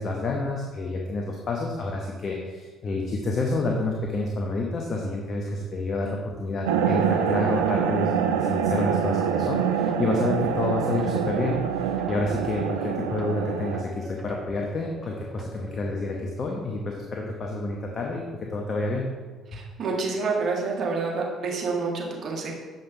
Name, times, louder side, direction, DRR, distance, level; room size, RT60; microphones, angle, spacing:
voice 1, 0.0-18.2 18.5-19.1 19.5-19.6, left 2 dB, 45° left, 0 dB, 1.0 m, -29 dB
sound 1, 6.7-13.8, right 8 dB, 80° right, 0.4 m, -25 dB
sound 2, 7.1-15.9, right 2 dB, 10° right, 1.0 m, -42 dB
voice 2, 19.5-22.6, right 4 dB, 50° right, -2 dB, 1.7 m, -28 dB
7.8 x 5.3 x 4.4 m, 1.4 s
hypercardioid pair, 50°, 0 cm